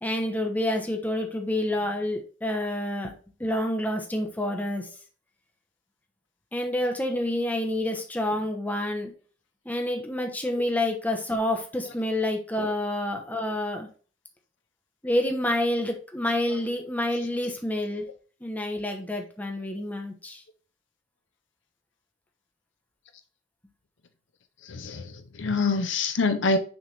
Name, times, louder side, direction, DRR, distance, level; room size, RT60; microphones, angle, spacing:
voice 1, 0.0-3.1 3.4-4.9 6.5-9.1 9.6-13.9 15.0-18.0 18.4-20.4, left 1 dB, 10° left, 1.0 m, -28 dB
voice 2, 24.7-26.6, left 3 dB, 75° left, 0.7 m, -26 dB
6.3 x 3.5 x 4.3 m
head